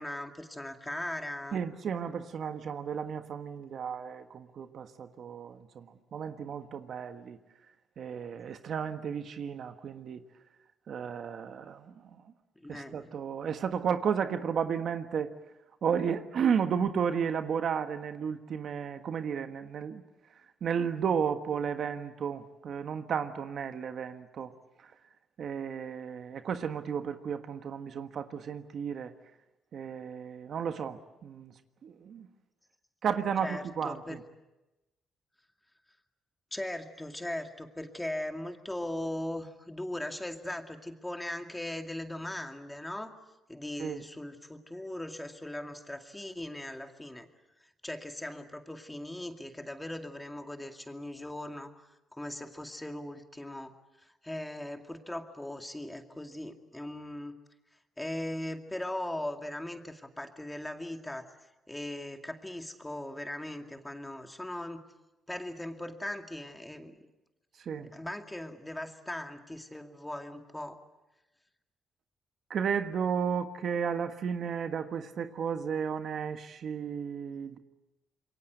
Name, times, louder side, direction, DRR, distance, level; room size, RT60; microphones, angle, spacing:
voice 1, 0.0-1.6 12.6-13.1 33.4-34.2 36.5-43.1 43.5-47.3 47.6-53.7 54.0-57.4 58.0-61.3 61.7-64.9 65.3-66.9 67.8-70.8, left 1 dB, 10° left, 2.3 m, -39 dB
voice 2, 1.5-7.4 8.0-10.2 10.9-12.2 12.7-15.3 15.8-20.0 20.6-24.5 24.8-24.9 25.4-29.1 29.7-31.5 31.8-32.3 33.0-34.2 43.8-44.0 67.6-67.9 72.5-77.6, right 7 dB, 60° right, 1.5 m, -33 dB
27.0 x 22.5 x 8.0 m
cardioid pair, 90°, 0 cm